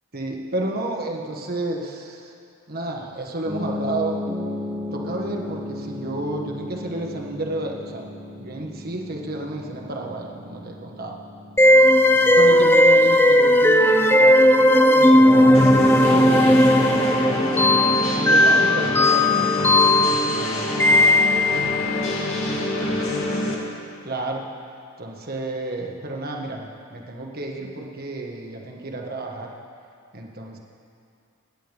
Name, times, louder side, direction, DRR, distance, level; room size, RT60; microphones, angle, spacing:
voice 1, 0.1-2.3 2.7-4.2 4.9-8.1 8.4-11.2 12.1-17.2 17.9-21.1 22.9-23.1 24.0-24.5 25.0-29.6 30.1-30.6, right 2 dB, 45° right, 0 dB, 1.5 m, -31 dB
sound 1, 3.5-14.2 15.2-17.5, left 1 dB, 10° right, 1.2 m, -34 dB
sound 2, 11.6-21.7, left 1 dB, 10° left, 0.4 m, -16 dB
sound 3, 15.5-23.5, left 1 dB, 80° left, 2.2 m, -26 dB
25.5 x 10.0 x 3.5 m, 2.4 s
head